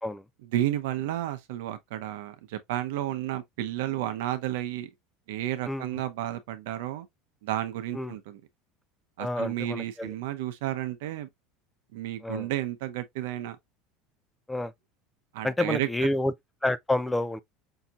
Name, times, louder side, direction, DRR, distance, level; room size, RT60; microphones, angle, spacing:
voice 1, 0.5-4.9 5.3-7.1 7.4-8.4 9.2-11.3 11.9-13.6 15.3-15.9, right 13 dB, 85° right, 0.7 m, -32 dB
voice 2, 5.6-6.0 7.9-8.2 9.2-10.1 12.2-12.5 14.5-14.7 15.4-16.3 16.6-17.4, left 1 dB, 5° left, 0.3 m, -29 dB
5.6 x 2.8 x 2.4 m
supercardioid pair, 140°, 0 cm